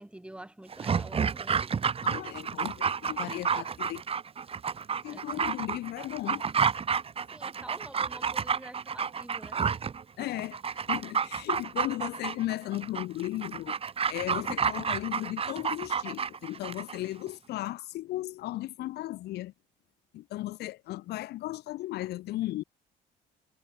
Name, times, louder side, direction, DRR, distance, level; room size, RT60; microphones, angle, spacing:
voice 1, 0.0-1.7 3.1-3.3 5.1-5.4 7.3-9.6, right 1 dB, 5° right, 5.7 m, -48 dB
Dog, 0.7-17.0 17.3-17.4, right 6 dB, 35° right, 3.0 m, -30 dB
voice 2, 2.0-4.0 5.0-6.4 10.2-10.6 10.9-13.8 14.1-19.5 20.1-22.6, left 16 dB, 75° left, 1.6 m, -35 dB
cardioid pair, 110°, 17 cm